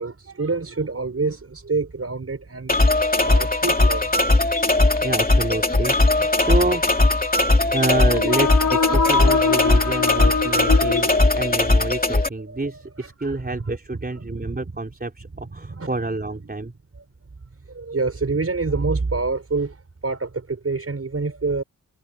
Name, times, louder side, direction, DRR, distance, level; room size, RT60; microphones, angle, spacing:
voice 1, 0.0-2.8 3.2-4.4 4.7-5.1 9.8-10.9 12.5-13.8 14.2-14.6 15.3-16.0 17.0-17.1 17.7-21.6, right 3 dB, 45° right, 5.3 m, -28 dB
sound 1, 2.7-12.3, left 2 dB, 25° left, 2.7 m, -19 dB
voice 2, 5.0-6.8 7.7-16.7, right 2 dB, 25° right, 4.3 m, -28 dB
sound 2, 8.0-11.8, left 5 dB, 70° left, 2.6 m, -24 dB
wide cardioid pair, 80°, 34 cm